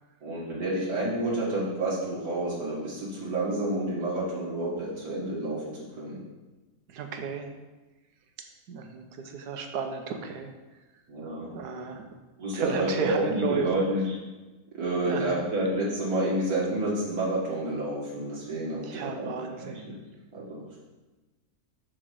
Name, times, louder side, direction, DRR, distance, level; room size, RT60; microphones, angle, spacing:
voice 1, 0.2-6.2 11.1-11.5 12.4-14.2 14.7-19.3 19.6-20.0 20.3-20.8, right 1 dB, 70° right, -6 dB, 2.3 m, -29 dB
voice 2, 6.9-7.5 8.7-10.5 11.5-12.0 12.5-13.7 15.1-15.4 18.9-19.8, right 6 dB, 90° right, 5 dB, 1.4 m, -33 dB
6.3 x 4.6 x 6.3 m, 1.2 s
omnidirectional pair, 1.7 m